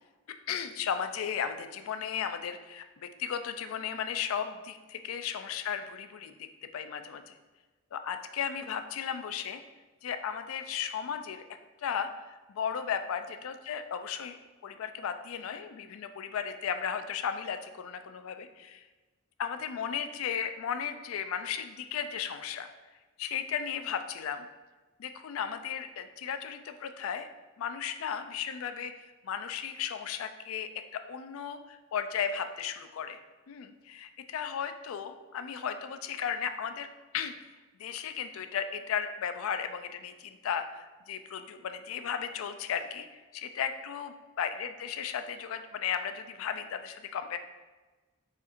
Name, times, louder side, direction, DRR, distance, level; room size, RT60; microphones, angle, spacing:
voice 1, 0.3-7.4 7.9-9.6 10.0-11.4 11.8-14.4 14.6-18.9 19.4-22.7 23.2-24.5 25.0-27.3 27.6-28.9 29.2-33.2 33.5-36.9 37.1-37.3 37.8-47.4, left 7 dB, 80° left, 9 dB, 0.4 m, -35 dB
4.8 x 4.3 x 2.5 m, 1.2 s
head